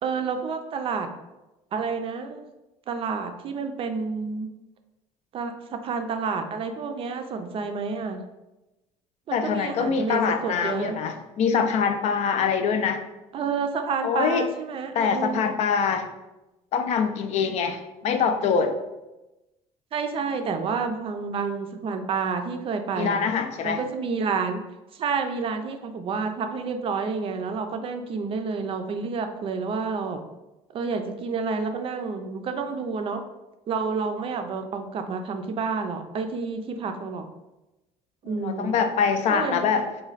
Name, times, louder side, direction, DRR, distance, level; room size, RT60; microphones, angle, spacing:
voice 1, 0.0-1.1 1.7-2.5 2.9-4.5 5.3-8.2 9.3-11.0 13.3-15.4 19.9-23.2 23.6-24.6 24.9-30.2 30.7-33.2 33.7-37.3 38.2-38.8 39.3-39.8, right 5 dB, 45° right, 6 dB, 0.4 m, -29 dB
voice 2, 9.3-13.0 14.0-14.5 14.9-16.1 16.7-18.7 23.0-23.8 38.3-39.9, left 6 dB, 55° left, 7 dB, 0.4 m, -24 dB
3.1 x 2.2 x 3.9 m, 1.0 s
cardioid pair, 105°, 14 cm